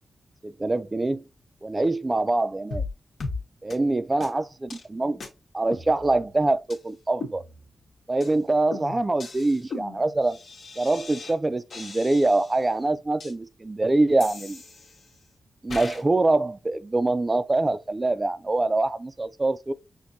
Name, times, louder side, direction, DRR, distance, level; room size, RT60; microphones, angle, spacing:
voice 1, 0.4-1.2 1.6-2.8 3.6-5.2 5.5-7.4 8.1-10.4 10.8-14.6 15.6-19.7, right 2 dB, 25° right, 0.3 m, -24 dB
sound 1, 2.7-2.9 3.2-3.4 3.7-3.8 4.2-4.3 4.7-4.9 5.2-5.3 5.7-6.3 6.7-6.8 7.2-7.8 8.2-8.4 8.7-11.3 11.7-12.6 13.2-13.3 14.2-15.2 15.7-16.0, left 3 dB, 70° left, 1.1 m, -37 dB
5.9 x 2.6 x 2.6 m
wide cardioid pair, 120°, 0 cm